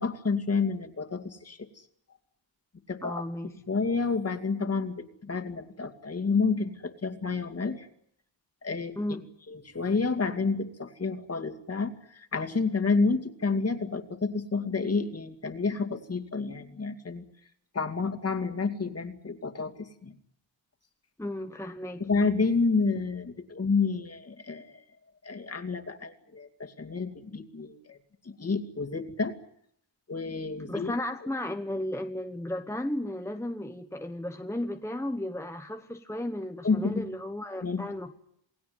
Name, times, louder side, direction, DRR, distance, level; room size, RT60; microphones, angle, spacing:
voice 1, 0.0-1.7 2.9-3.2 3.7-7.9 8.6-9.0 9.5-17.2 17.7-20.1 22.0-24.8 25.2-28.0 28.2-29.4 30.1-30.9 36.6-37.1 37.6-37.8, left 4 dB, 30° left, 5 dB, 2.4 m, -29 dB
voice 2, 3.0-3.5 9.0-9.3 21.2-22.1 30.7-38.1, left 1 dB, 5° left, 6 dB, 1.0 m, -34 dB
28.5 x 19.0 x 9.5 m, 0.70 s
wide cardioid pair, 150°, 45 cm